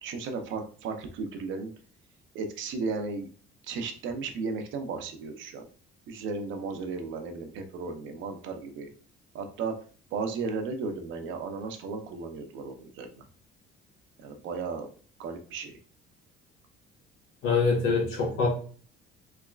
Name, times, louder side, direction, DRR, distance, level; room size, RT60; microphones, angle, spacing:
voice 1, 0.0-1.7 2.3-3.3 3.7-5.7 6.1-8.9 9.3-9.7 10.1-13.1 14.2-14.9 15.2-15.8, right 4 dB, 70° right, 6 dB, 0.7 m, -35 dB
voice 2, 17.4-18.5, left 4 dB, 80° left, -2 dB, 1.5 m, -24 dB
3.4 x 3.1 x 2.4 m, 0.42 s
cardioid pair, 165°, 21 cm